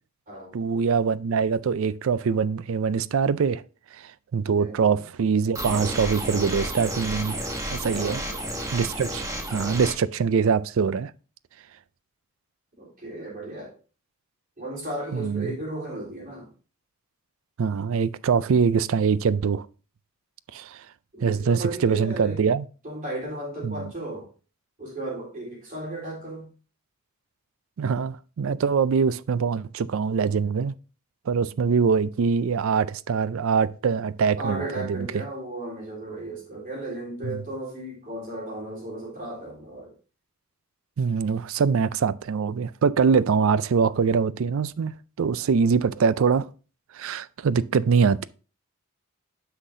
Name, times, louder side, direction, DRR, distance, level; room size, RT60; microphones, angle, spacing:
voice 1, 0.5-3.6 3.9-7.4 7.7-8.2 8.7-11.1 15.1-15.5 17.6-19.7 20.5-20.9 21.2-22.6 23.6-23.9 27.8-30.7 31.3-35.2 37.2-37.4 41.0-46.5 46.9-48.3, right 5 dB, 65° right, 0.4 m, -23 dB
voice 2, 4.5-4.9 7.9-8.6 12.8-13.7 14.6-16.5 21.1-22.4 22.8-24.3 24.8-26.5 31.5-31.6 34.4-39.9, right 2 dB, 40° right, 3.7 m, -35 dB
sound 1, 5.5-9.9, right 1 dB, 15° right, 1.0 m, -31 dB
9.8 x 5.9 x 2.6 m
head